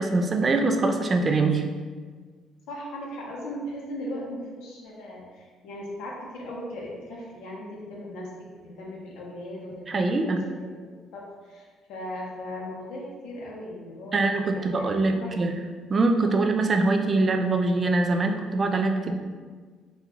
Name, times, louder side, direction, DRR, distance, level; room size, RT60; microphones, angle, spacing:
voice 1, 0.0-1.7 9.9-10.4 14.1-15.6 15.9-19.1, right 3 dB, 30° right, 5 dB, 0.3 m, -23 dB
voice 2, 2.7-15.5, left 1 dB, 90° left, -3 dB, 0.7 m, -38 dB
4.0 x 2.3 x 2.9 m, 1.5 s
cardioid pair, 120°, 0 cm